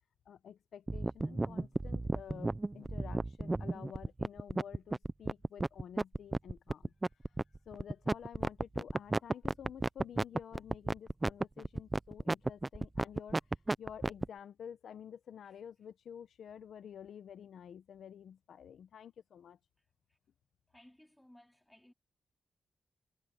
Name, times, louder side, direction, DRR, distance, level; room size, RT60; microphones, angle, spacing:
voice 1, 0.3-6.9 7.7-13.4 13.8-19.6, left 8 dB, 85° left, 0.7 m, -50 dB
sound 1, 0.9-14.3, right 2 dB, 15° right, 0.4 m, -33 dB
voice 2, 20.7-21.9, left 1 dB, 5° left, 3.5 m, -60 dB
wide cardioid pair, 150°, 0 cm